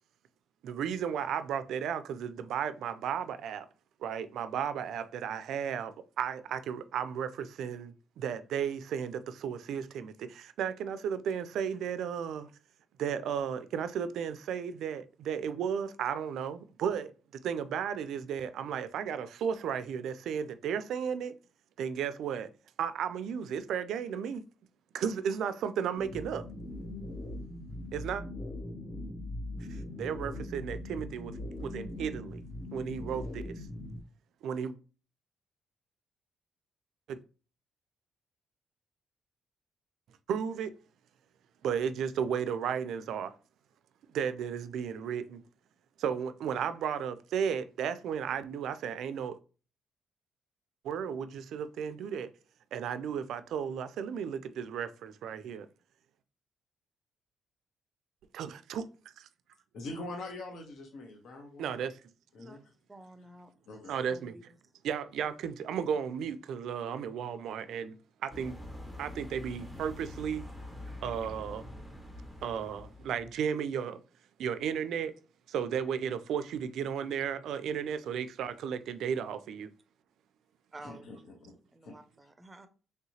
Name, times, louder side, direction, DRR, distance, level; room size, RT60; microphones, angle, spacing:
voice 1, 0.6-3.7 4.0-12.5 13.0-17.1 17.4-21.3 21.8-22.5 22.8-24.4 24.9-26.4 27.9-28.2 29.7-32.4 32.7-33.7 34.4-34.8 37.1-37.2 40.3-40.7 41.6-43.3 44.1-45.4 46.0-49.4 50.8-52.3 52.7-55.7 58.3-58.8 59.2-59.3 61.6-62.0 63.9-64.4 64.8-68.0 68.2-68.6 69.0-70.5 71.0-71.6 72.4-74.0 74.4-75.1 75.5-79.7, right 7 dB, 75° right, 0.3 m, -34 dB
sound 1, 26.0-34.0, left 1 dB, 45° left, 0.7 m, -40 dB
voice 2, 59.7-61.8 62.3-62.6 63.7-63.9 80.8-81.5 81.8-81.9, left 2 dB, 70° left, 0.8 m, -43 dB
voice 3, 62.9-64.4 70.9-71.0 80.7-81.1 81.7-82.7, right 2 dB, 20° right, 0.5 m, -51 dB
sound 2, 68.3-73.3, left 1 dB, 15° left, 0.9 m, -45 dB
3.3 x 2.8 x 2.7 m
cardioid pair, 90°, 0 cm